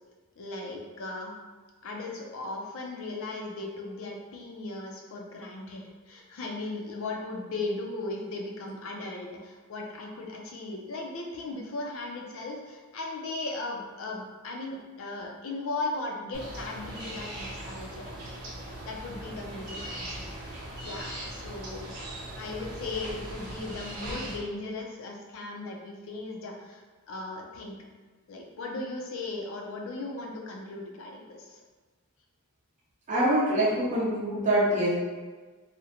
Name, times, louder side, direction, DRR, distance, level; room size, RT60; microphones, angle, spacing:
voice 1, 0.4-1.3 1.8-18.2 18.8-27.8 28.3-31.6, left 2 dB, 60° left, 0 dB, 0.4 m, -37 dB
sound 1, 16.3-24.4, right 1 dB, 90° right, 0.7 m, -39 dB
voice 2, 33.1-34.9, right 1 dB, 35° right, -7 dB, 0.6 m, -24 dB
2.5 x 2.1 x 2.8 m, 1.4 s
head